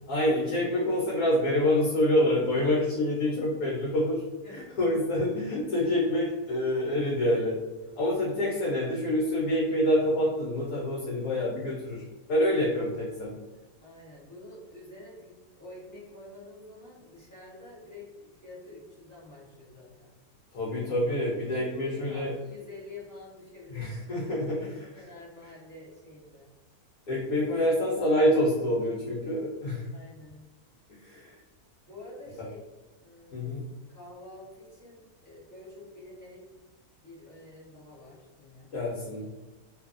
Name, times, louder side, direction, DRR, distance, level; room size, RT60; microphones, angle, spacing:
voice 1, 0.1-7.6 7.9-12.0 12.3-13.4 20.5-22.3 23.7-25.1 27.1-29.9 30.9-31.4 32.3-32.5 33.3-33.6 38.7-39.3, left 1 dB, 75° left, -6 dB, 1.1 m, -27 dB
voice 2, 4.4-4.7 13.8-20.1 21.5-24.3 24.9-26.5 29.9-30.4 31.9-32.6 33.0-33.5 33.9-36.4 37.0-38.7, left 2 dB, 20° left, -7 dB, 0.5 m, -48 dB
2.6 x 2.4 x 2.4 m, 1.2 s
omnidirectional pair, 1.6 m